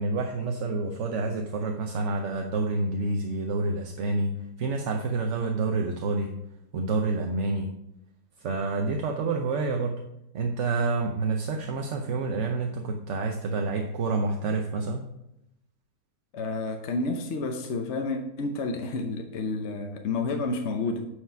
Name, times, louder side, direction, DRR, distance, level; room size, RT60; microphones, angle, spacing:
voice 1, 0.0-4.3 4.6-6.3 6.7-7.7 8.4-10.0 10.3-15.1, right 3 dB, 55° right, 3 dB, 1.0 m, -28 dB
voice 2, 16.3-21.1, left 3 dB, 55° left, 5 dB, 1.0 m, -30 dB
9.1 x 4.9 x 5.6 m, 0.83 s
omnidirectional pair, 1.7 m